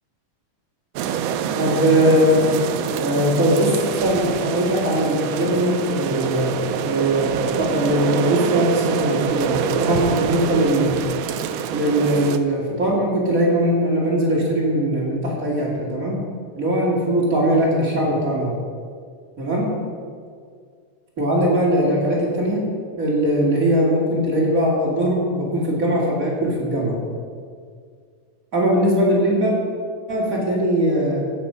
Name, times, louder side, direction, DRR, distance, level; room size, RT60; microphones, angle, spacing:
sound 1, 1.0-12.4, right 8 dB, 80° right, 1.5 m, -25 dB
voice 1, 1.5-2.5 3.0-6.5 6.8-11.0 11.7-16.2 16.5-18.5 19.4-19.7 21.2-22.6 23.0-27.0 28.5-29.5 30.1-31.2, equal, 30° right, -4 dB, 2.5 m, -20 dB
15.5 x 6.8 x 5.7 m, 2.1 s
omnidirectional pair, 3.5 m